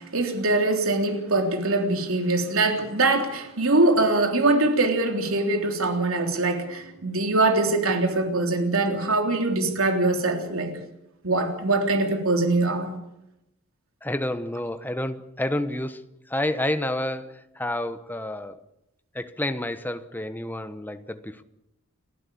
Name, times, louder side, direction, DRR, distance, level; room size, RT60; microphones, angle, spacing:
voice 1, 0.0-10.8 11.2-12.9, right 2 dB, 70° right, 3.6 m, -23 dB
voice 2, 14.0-18.6 19.1-21.4, left 1 dB, 10° left, 1.1 m, -29 dB
30.0 x 12.0 x 8.6 m
head